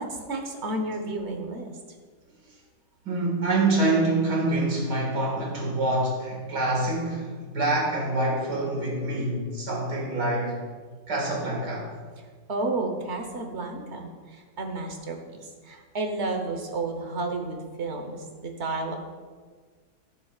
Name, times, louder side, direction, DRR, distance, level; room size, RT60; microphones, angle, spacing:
voice 1, 0.0-1.7 12.5-19.0, right 2 dB, 45° right, 4 dB, 1.3 m, -32 dB
voice 2, 3.1-10.6 11.1-11.9, right 2 dB, 85° right, -2 dB, 2.6 m, -26 dB
15.5 x 7.4 x 2.4 m, 1.5 s
omnidirectional pair, 1.7 m